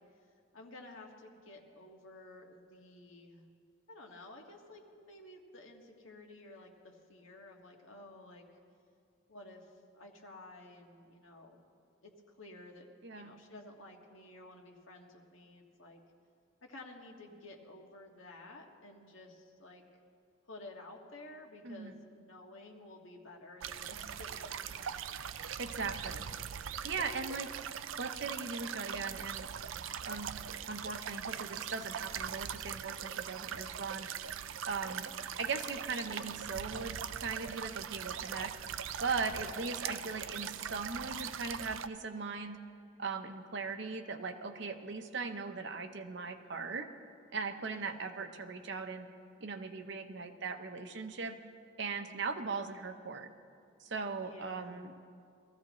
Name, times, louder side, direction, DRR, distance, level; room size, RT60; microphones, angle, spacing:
voice 1, 0.5-3.4 3.9-8.4 9.3-11.6 12.0-16.0 16.6-19.8 20.5-25.8 34.8-35.1 39.3-39.5 47.7-48.3 54.1-54.8, left 2 dB, 80° left, 1 dB, 1.7 m, -53 dB
voice 2, 13.0-13.4 21.6-21.9 25.6-26.3 26.8-27.5 28.0-29.5 30.0-34.1 34.7-35.1 35.4-38.5 39.0-42.6 43.0-46.9 47.3-49.1 49.4-51.4 51.8-53.3 53.8-55.1, right 4 dB, 60° right, 7 dB, 0.9 m, -39 dB
sound 1, 23.6-41.9, right 8 dB, 80° right, 0.5 m, -41 dB
22.5 x 14.5 x 3.1 m, 2.3 s
head